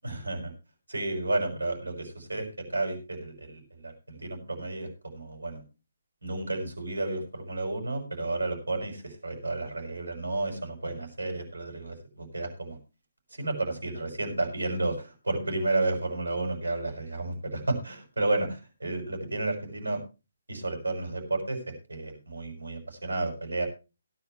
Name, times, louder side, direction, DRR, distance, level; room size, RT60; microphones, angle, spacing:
voice 1, 0.0-0.5 0.9-5.6 6.2-12.8 13.3-20.0 20.5-23.7, right 2 dB, 70° right, 6 dB, 6.1 m, -32 dB
17.5 x 10.5 x 3.1 m, 0.30 s
figure-of-eight pair, 140°, 0 cm